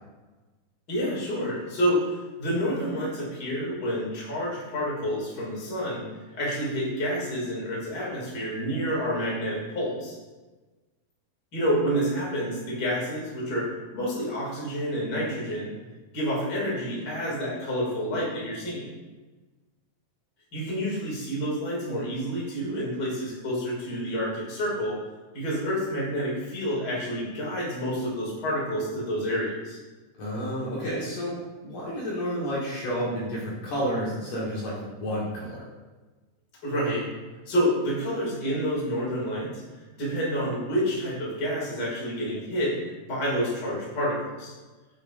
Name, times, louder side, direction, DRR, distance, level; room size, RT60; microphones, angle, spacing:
voice 1, 0.9-6.0 6.4-10.1 11.5-15.7 16.1-18.9 20.5-25.0 25.3-29.8 36.6-37.1 37.5-39.6 40.0-42.7 43.0-44.5, equal, 30° left, -5 dB, 2.8 m, -28 dB
voice 2, 30.2-31.3 31.6-35.6, equal, 65° left, -6 dB, 3.0 m, -30 dB
9.7 x 8.0 x 2.6 m, 1.2 s
omnidirectional pair, 4.1 m